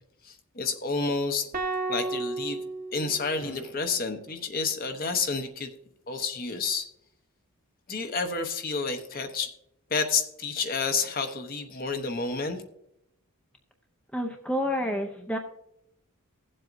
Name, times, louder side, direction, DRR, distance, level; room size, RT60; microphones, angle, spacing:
voice 1, 0.2-1.5 1.9-2.6 2.9-5.7 6.1-6.9 7.9-9.5 9.9-12.6, left 4 dB, 40° left, 6 dB, 0.9 m, -30 dB
sound 1, 1.5-3.9, right 3 dB, 40° right, 1.0 m, -33 dB
Drum, 3.4-5.7, equal, 85° left, 3.2 m, -52 dB
voice 2, 14.1-15.4, equal, 5° left, 3 dB, 0.6 m, -29 dB
16.5 x 7.6 x 2.6 m, 0.78 s
head